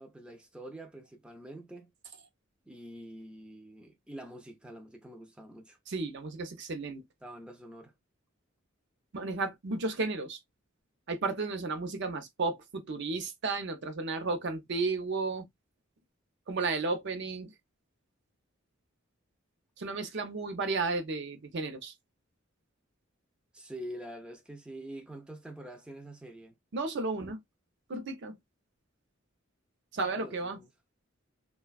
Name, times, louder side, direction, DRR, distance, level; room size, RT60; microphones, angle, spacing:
voice 1, 0.0-1.9 2.7-5.8 7.2-7.9 23.5-26.6 30.0-30.7, right 1 dB, 5° right, 0.4 m, -46 dB
voice 2, 5.9-7.0 9.1-10.4 11.1-15.5 16.5-17.5 19.8-21.9 26.7-27.4 27.9-28.4 29.9-30.6, right 3 dB, 60° right, 0.6 m, -33 dB
3.2 x 2.2 x 2.2 m
head